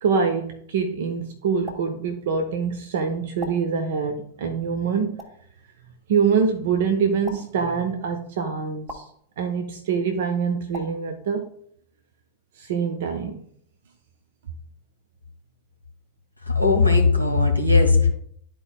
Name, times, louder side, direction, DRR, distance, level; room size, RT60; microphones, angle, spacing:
voice 1, 0.0-5.2 6.1-9.1 9.4-11.4 12.6-13.4, right 6 dB, 55° right, 6 dB, 0.7 m, -25 dB
sound 1, 1.6-1.8 3.4-3.5 5.2-5.3 7.2-7.4 8.9-9.0 10.7-10.9, left 1 dB, 20° right, 1.6 m, -36 dB
voice 2, 16.5-18.1, left 4 dB, 90° right, 4 dB, 1.4 m, -18 dB
12.5 x 4.5 x 2.3 m, 0.65 s
figure-of-eight pair, 90°, 0 cm